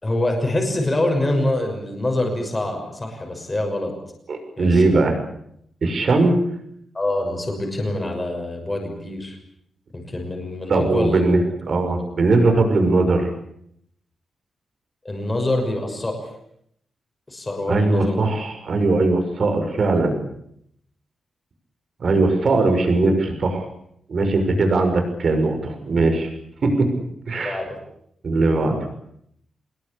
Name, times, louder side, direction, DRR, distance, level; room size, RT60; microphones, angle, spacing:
voice 1, 0.0-3.9 4.6-5.1 6.9-9.4 9.9-11.2 15.0-16.2 17.3-18.2 22.4-22.6 27.4-27.8, left 1 dB, 15° left, 2 dB, 6.2 m, -25 dB
voice 2, 4.3-5.1 5.8-6.3 10.7-11.4 11.7-13.3 17.7-20.2 22.0-23.6 24.1-26.3 26.6-26.9 27.3-27.6 28.2-28.8, right 3 dB, 45° right, 6 dB, 6.2 m, -19 dB
26.0 x 21.0 x 8.7 m, 0.72 s
wide cardioid pair, 165°, 0 cm